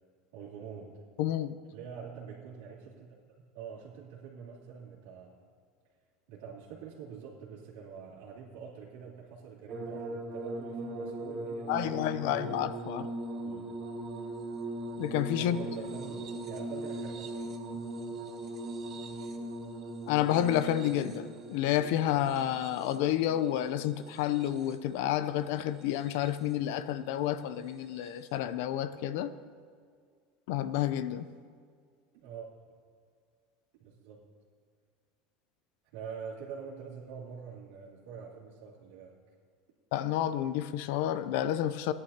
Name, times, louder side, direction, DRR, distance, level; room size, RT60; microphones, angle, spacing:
voice 1, 0.3-1.1 1.6-3.1 3.5-5.4 6.3-12.4 13.4-13.8 15.3-17.4 32.1-32.5 33.8-34.3 35.9-39.2, right 6 dB, 85° right, 2.7 m, -45 dB
voice 2, 1.2-1.6 11.7-13.1 15.0-15.6 20.1-29.3 30.5-31.3 39.9-41.9, left 11 dB, 70° left, 0.6 m, -30 dB
sound 1, 9.7-24.9 25.8-26.5 27.9-28.1, right 2 dB, 35° right, 1.1 m, -40 dB
18.5 x 11.0 x 2.9 m
supercardioid pair, 155°, 0 cm